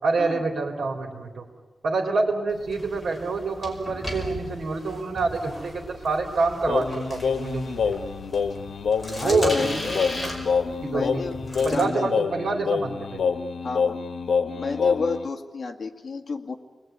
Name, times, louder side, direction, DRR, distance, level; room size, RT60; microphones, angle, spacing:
voice 1, 0.0-1.5 1.8-7.9 9.2-9.7 10.8-11.2 11.6-13.2, right 3 dB, 75° right, 3 dB, 4.0 m, -26 dB
sound 1, 2.5-11.9, equal, 5° left, 5.2 m, -37 dB
Singing, 6.7-15.3, left 6 dB, 85° left, 1.3 m, -27 dB
voice 2, 9.1-10.0 10.8-11.4 11.7-12.1 13.6-14.0 14.5-16.5, left 4 dB, 45° left, 2 dB, 2.1 m, -30 dB
29.5 x 21.5 x 9.5 m, 1.4 s
wide cardioid pair, 155°, 0 cm